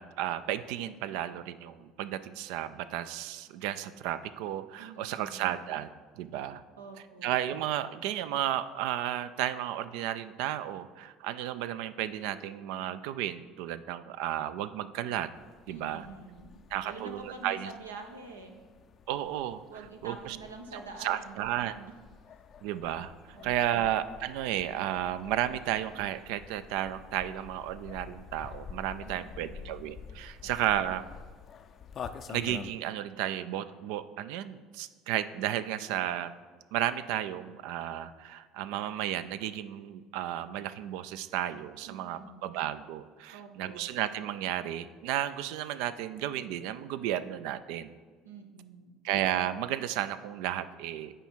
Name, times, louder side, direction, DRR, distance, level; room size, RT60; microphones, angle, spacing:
voice 1, 0.0-5.9 6.2-6.6 7.2-15.3 15.7-16.1 16.7-17.7 19.1-19.6 20.0-20.4 21.0-21.9 22.6-31.1 32.3-36.3 36.7-47.9 49.0-51.1, right 12 dB, 65° right, 13 dB, 0.3 m, -33 dB
voice 2, 4.8-5.5 6.8-7.3 15.7-18.6 19.7-21.3 23.3-23.9 29.0-29.7 30.4-30.5 41.9-42.5 43.3-43.9 48.2-48.9, right 3 dB, 90° right, 3 dB, 0.8 m, -47 dB
sound 1, 15.4-32.7, left 7 dB, 45° left, 0.4 m, -48 dB
8.9 x 4.9 x 4.4 m, 1.5 s
hypercardioid pair, 65°, 0 cm